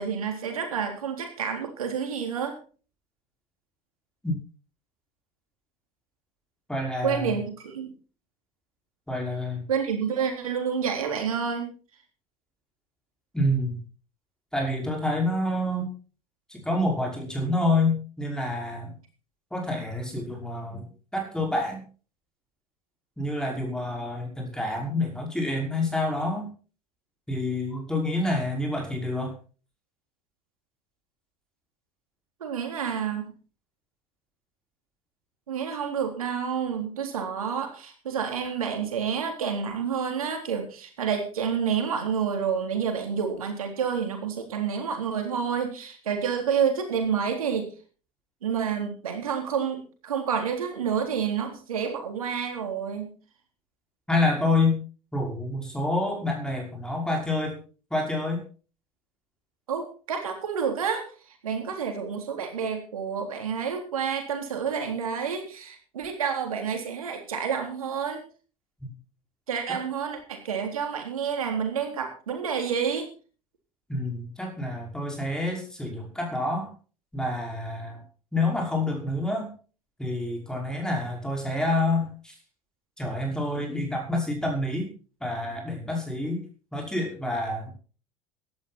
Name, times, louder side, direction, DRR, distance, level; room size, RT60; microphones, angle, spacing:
voice 1, 0.0-2.6 7.0-7.9 9.7-11.7 32.4-33.3 35.5-47.7 48.4-53.1 59.7-61.0 61.4-68.2 69.5-73.1, right 7 dB, 75° right, 4 dB, 3.8 m, -29 dB
voice 2, 6.7-7.3 9.1-9.6 13.3-13.8 14.5-15.9 16.5-19.0 19.5-21.8 23.2-26.5 27.3-29.3 54.1-54.8 55.1-57.6 57.9-58.4 68.8-68.9 69.7-69.8 73.9-76.7 77.1-78.0 78.3-79.5 80.0-82.3 83.0-84.9 85.2-86.4 86.7-87.7, left 2 dB, 5° left, 0 dB, 5.7 m, -28 dB
17.0 x 12.5 x 4.4 m, 0.39 s
figure-of-eight pair, 70°, 18 cm